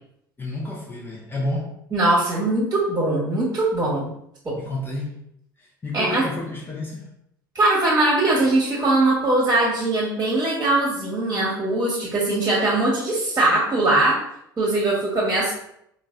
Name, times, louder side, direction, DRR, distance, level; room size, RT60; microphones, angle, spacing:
voice 1, 0.4-1.8 4.6-5.2 5.6-7.1, left 2 dB, 20° left, -2 dB, 0.5 m, -30 dB
voice 2, 1.9-4.1 4.4-4.5 5.9-6.3 7.5-14.2 14.6-15.5, right 2 dB, 25° right, -5 dB, 1.1 m, -21 dB
3.9 x 2.3 x 2.4 m, 0.75 s
figure-of-eight pair, 70°, 11 cm